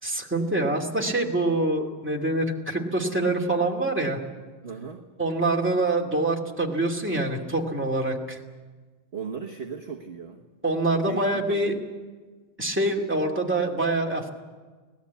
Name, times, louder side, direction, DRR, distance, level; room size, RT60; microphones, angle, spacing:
voice 1, 0.0-4.2 5.2-8.4 10.6-11.8 12.6-14.3, right 2 dB, 5° right, -1 dB, 2.4 m, -25 dB
voice 2, 4.6-5.1 9.1-10.4 11.1-11.8, right 5 dB, 35° right, 2 dB, 1.3 m, -36 dB
25.0 x 18.5 x 8.3 m, 1.4 s
omnidirectional pair, 2.1 m